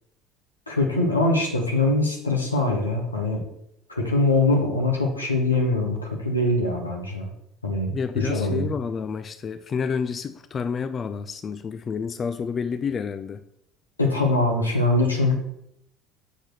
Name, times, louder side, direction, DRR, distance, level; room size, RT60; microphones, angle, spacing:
voice 1, 0.7-3.4 4.0-7.3 7.6-8.7 14.0-15.3, left 2 dB, 85° left, -1 dB, 1.8 m, -23 dB
voice 2, 7.9-13.4, left 6 dB, 30° left, 9 dB, 0.4 m, -29 dB
7.1 x 5.0 x 6.3 m, 0.77 s
figure-of-eight pair, 65°, 0 cm